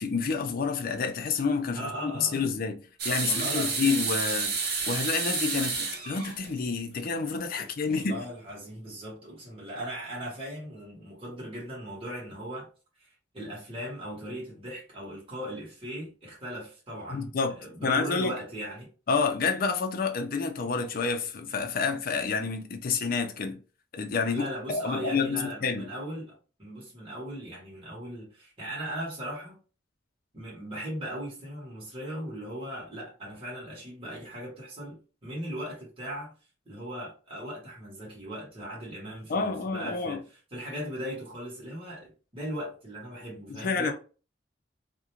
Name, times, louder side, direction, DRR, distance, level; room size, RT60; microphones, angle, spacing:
voice 1, 0.0-2.8 3.0-4.5 4.9-8.2 17.1-17.5 17.8-18.3 19.1-23.6 23.9-25.9 39.3-40.2 43.5-43.9, left 5 dB, 50° left, 0.4 m, -29 dB
voice 2, 1.8-2.5 3.2-3.9 7.6-12.7 13.0-17.3 17.6-18.9 24.3-29.6 30.3-36.3 36.6-40.2 40.5-43.9, equal, 30° right, 1.1 m, -38 dB
sound 1, 3.0-6.9 7.3-7.4 8.5-8.6, right 4 dB, 60° right, 0.7 m, -30 dB
2.4 x 2.1 x 2.9 m
head